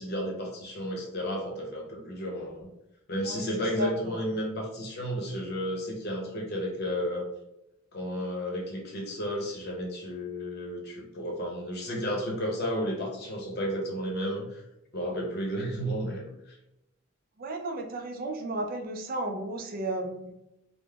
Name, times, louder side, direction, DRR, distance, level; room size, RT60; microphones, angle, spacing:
voice 1, 0.0-2.7 3.1-7.3 7.9-14.6 14.9-16.6, equal, 55° left, -1 dB, 0.7 m, -32 dB
voice 2, 3.2-4.2 17.4-20.4, right 1 dB, 45° right, 4 dB, 0.4 m, -34 dB
3.3 x 2.0 x 2.3 m, 0.86 s
head